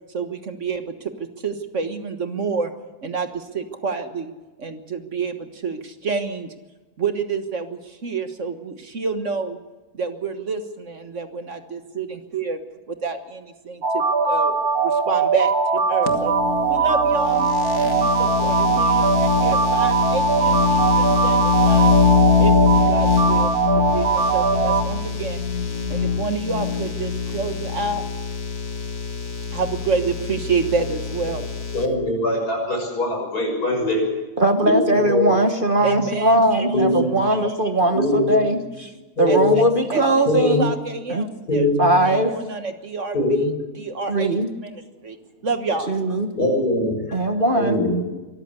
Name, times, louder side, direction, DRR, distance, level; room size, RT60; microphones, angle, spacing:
voice 1, 0.1-2.7 3.0-4.3 4.6-6.5 7.0-9.6 9.9-12.6 12.9-16.3 16.7-17.5 17.8-21.9 22.4-25.4 25.9-28.0 29.5-31.4 35.8-37.5 39.3-39.6 39.9-40.3 40.6-41.7 42.0-43.4 43.8-44.3 44.6-45.2 45.4-45.9, right 4 dB, 50° right, 8 dB, 1.7 m, -28 dB
sound 1, 13.8-24.8, right 5 dB, 70° right, 2.2 m, -20 dB
sound 2, 16.1-31.9, left 6 dB, 55° left, 2.0 m, -23 dB
voice 2, 31.7-34.0 34.6-35.3 36.7-37.1 37.9-38.3 39.2-39.5 40.3-40.6 41.5-41.9 43.1-43.5 46.3-47.2 47.5-47.9, left 1 dB, 75° left, 1 dB, 6.9 m, -22 dB
voice 3, 34.4-38.6 39.2-40.7 41.1-41.2 41.8-42.3 44.1-44.5 45.9-46.3 47.1-47.8, right 1 dB, 35° right, 6 dB, 1.3 m, -19 dB
23.5 x 14.0 x 8.3 m, 1.2 s
omnidirectional pair, 1.7 m